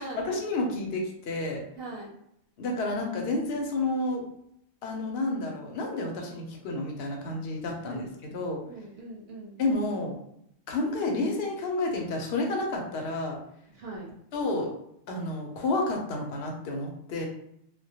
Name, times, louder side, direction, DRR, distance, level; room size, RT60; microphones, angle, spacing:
voice 1, 0.0-1.6 2.6-4.2 4.8-8.6 9.6-10.1 10.7-13.4 14.3-14.7 15.1-17.3, left 2 dB, 65° left, 1 dB, 0.8 m, -30 dB
voice 2, 1.7-2.1 7.8-8.1 8.7-9.6 13.7-14.1, right 2 dB, 60° right, -2 dB, 0.7 m, -40 dB
2.2 x 2.1 x 2.7 m, 0.74 s
omnidirectional pair, 1.3 m